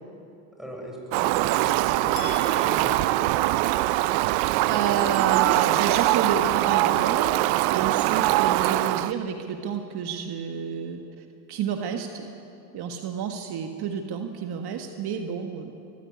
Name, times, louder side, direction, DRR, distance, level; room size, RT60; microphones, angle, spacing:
voice 1, 0.6-3.2, equal, ahead, 0 dB, 6.7 m, -38 dB
Fowl, 1.1-9.1, right 16 dB, 70° right, 0.7 m, -22 dB
sound 1, 2.2-4.3, right 1 dB, 85° left, 3.7 m, -39 dB
voice 2, 4.7-7.3 7.7-11.0 11.5-12.3 12.7-15.7, right 7 dB, 55° right, 5 dB, 1.7 m, -30 dB
21.5 x 15.0 x 9.6 m, 2.8 s
supercardioid pair, 85°, 47 cm